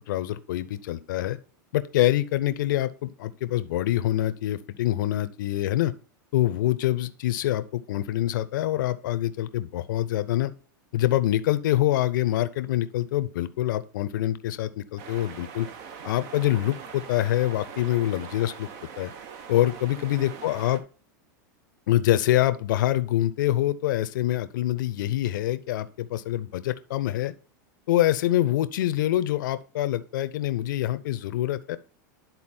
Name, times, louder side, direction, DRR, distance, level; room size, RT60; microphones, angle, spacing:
voice 1, 0.1-1.4 1.7-5.9 6.3-10.5 10.9-15.7 16.0-18.7 19.0-19.1 19.5-20.8 21.9-27.3 27.9-31.8, left 14 dB, 75° left, 13 dB, 0.6 m, -25 dB
sound 1, 15.0-20.8, right 6 dB, 60° right, 1.2 m, -42 dB
10.5 x 4.0 x 4.3 m, 0.39 s
hypercardioid pair, 115°, 10 cm